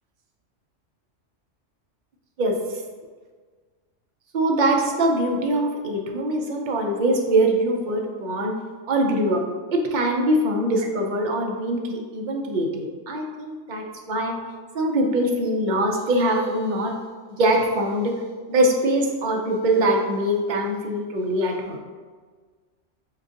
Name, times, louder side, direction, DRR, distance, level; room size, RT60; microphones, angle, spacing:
voice 1, 2.4-2.8 4.3-8.5 8.9-9.4 9.7-14.3 14.7-16.9 17.4-18.1 18.5-21.8, right 1 dB, 50° right, 1 dB, 0.6 m, -23 dB
6.3 x 2.5 x 2.5 m, 1.5 s
omnidirectional pair, 1.3 m